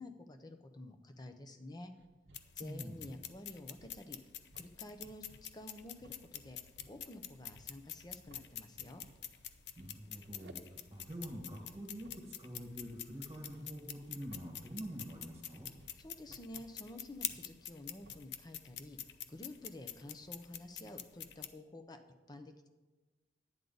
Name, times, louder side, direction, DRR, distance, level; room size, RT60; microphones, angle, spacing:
voice 1, 0.0-1.9 2.6-4.2 4.6-5.2 5.5-6.6 6.8-9.0 16.0-22.0 22.3-22.7, left 1 dB, 25° left, 7 dB, 0.7 m, -50 dB
sound 1, 2.0-18.4, right 2 dB, 80° right, 0.8 m, -62 dB
sound 2, 2.3-21.5, left 11 dB, 70° left, 0.6 m, -48 dB
voice 2, 2.6-3.1 9.8-10.6 10.9-15.7, equal, 15° right, 0 dB, 1.7 m, -46 dB
11.0 x 9.3 x 4.0 m, 1.2 s
head